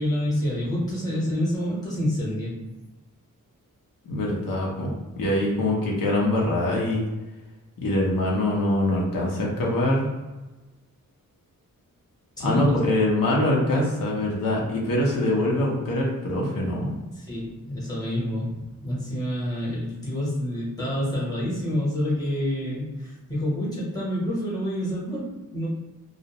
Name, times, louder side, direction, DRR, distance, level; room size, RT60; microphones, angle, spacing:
voice 1, 0.0-2.5 12.4-12.6 17.1-25.7, equal, 10° left, -7 dB, 0.8 m, -28 dB
voice 2, 4.1-7.0 7.8-10.1 12.4-16.9, left 1 dB, 80° left, -3 dB, 0.7 m, -24 dB
2.4 x 2.0 x 2.8 m, 1.1 s
wide cardioid pair, 165°, 33 cm